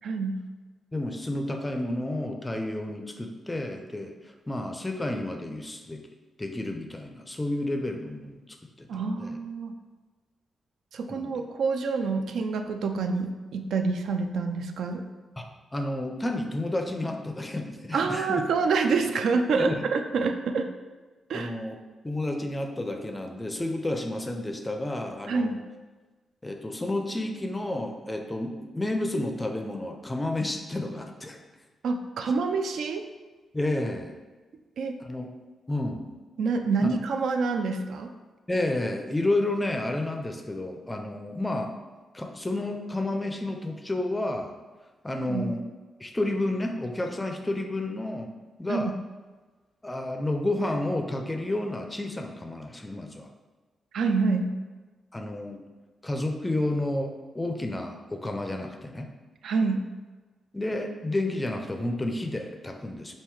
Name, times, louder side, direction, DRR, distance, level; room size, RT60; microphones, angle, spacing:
voice 1, 0.0-0.4 8.9-9.7 10.9-15.0 17.9-20.7 21.3-21.5 25.3-25.7 31.8-33.0 34.8-35.0 36.4-38.1 45.3-45.4 48.7-48.9 53.9-54.5 59.4-59.8, right 4 dB, 75° right, 6 dB, 0.3 m, -27 dB
voice 2, 0.9-6.0 6.4-9.4 11.1-11.4 15.4-18.4 19.6-19.8 21.3-21.8 22.0-25.6 26.4-31.4 33.5-34.2 35.0-35.3 35.7-36.1 36.8-36.9 38.5-41.8 42.1-44.5 45.0-45.6 46.0-48.3 48.6-48.9 49.8-53.3 55.1-55.6 56.0-59.1 60.5-63.1, left 1 dB, 15° left, 4 dB, 0.4 m, -31 dB
3.6 x 2.6 x 4.6 m, 1.3 s
cardioid pair, 125°, 0 cm